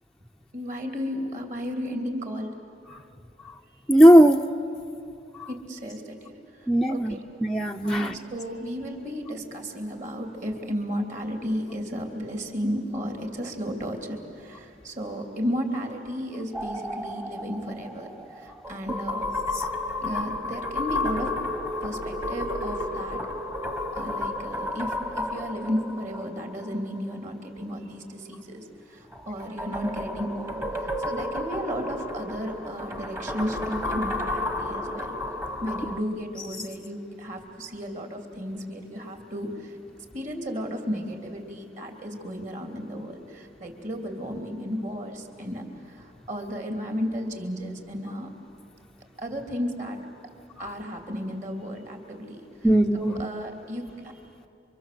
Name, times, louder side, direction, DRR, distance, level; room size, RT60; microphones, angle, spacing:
voice 1, 0.5-2.6 5.5-7.2 7.8-18.1 18.3-19.3 20.0-21.3 21.8-23.2 23.9-35.2 35.6-39.7 40.1-48.3 49.2-50.0 50.6-52.4 52.9-54.2, equal, 45° right, 4 dB, 3.1 m, -33 dB
voice 2, 3.9-4.4 5.4-5.5 6.7-7.1 7.4-8.2 19.5-19.7 24.0-24.1 50.6-50.7 52.6-53.3, equal, 5° left, 1 dB, 0.6 m, -18 dB
sound 1, 16.5-27.1 29.1-36.0, left 2 dB, 15° right, 1.2 m, -32 dB
29.0 x 25.0 x 7.8 m, 2.7 s
head